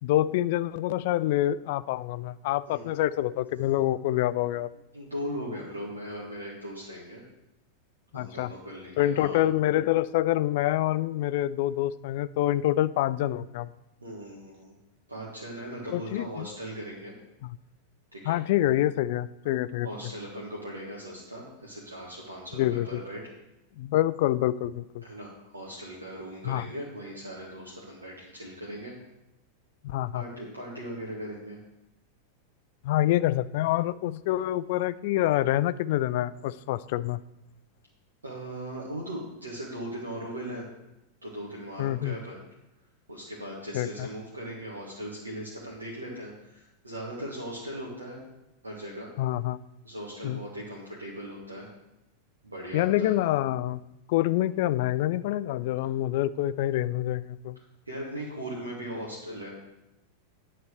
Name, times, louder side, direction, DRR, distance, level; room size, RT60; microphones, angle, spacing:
voice 1, 0.0-4.7 8.1-8.5 9.0-13.7 15.9-16.5 17.4-17.6 18.2-19.9 22.6-23.0 23.8-25.0 26.4-26.7 29.8-30.2 32.8-37.2 41.8-42.2 43.7-44.1 49.2-49.6 50.2-50.4 52.7-53.8 54.1-57.6, left 14 dB, 50° left, 17 dB, 0.3 m, -26 dB
voice 2, 4.9-7.2 8.1-9.4 14.0-14.7 15.1-17.1 18.1-18.4 19.8-23.2 25.0-29.0 30.1-31.6 38.2-40.6 41.2-42.4 43.1-48.2 48.6-49.1 49.8-51.7 52.4-53.1 57.9-59.7, equal, 80° right, -5 dB, 1.7 m, -39 dB
9.5 x 4.2 x 6.6 m, 0.93 s
figure-of-eight pair, 90°, 0 cm